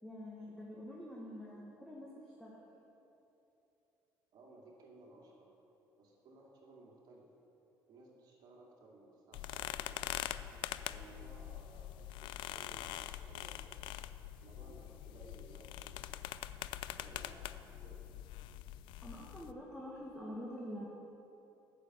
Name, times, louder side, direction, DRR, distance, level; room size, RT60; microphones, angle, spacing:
voice 1, 0.0-2.6 19.0-20.9, equal, 5° left, -4 dB, 1.6 m, -46 dB
voice 2, 4.3-5.5 6.0-7.3 7.9-10.2 10.9-13.9 14.4-16.2 17.0-18.2, right 2 dB, 55° right, -2 dB, 2.4 m, -58 dB
sound 1, 9.3-19.5, left 13 dB, 80° left, 0.4 m, -44 dB
8.3 x 6.8 x 7.8 m, 2.9 s
cardioid pair, 90°, 8 cm